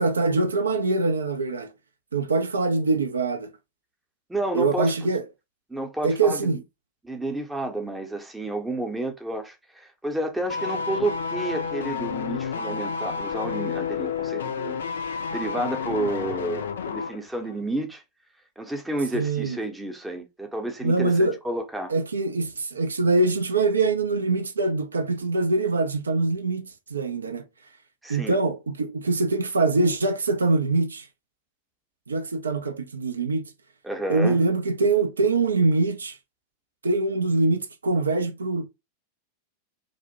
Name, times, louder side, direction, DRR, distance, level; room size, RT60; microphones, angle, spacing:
voice 1, 0.0-1.7 2.1-3.5 4.5-5.2 6.0-6.6 19.1-19.6 20.8-21.4 21.9-27.4 28.1-31.1 32.1-33.5 34.1-36.2 36.8-38.6, right 3 dB, 75° right, 0.3 m, -23 dB
voice 2, 4.3-4.9 5.7-6.6 7.0-14.8 15.3-18.0 18.6-21.9 28.0-28.4 33.8-34.4, right 1 dB, 5° right, 0.6 m, -30 dB
sound 1, 10.5-17.2 17.4-17.6, left 6 dB, 65° left, 0.3 m, -30 dB
2.5 x 2.0 x 2.8 m
figure-of-eight pair, 90°, 0 cm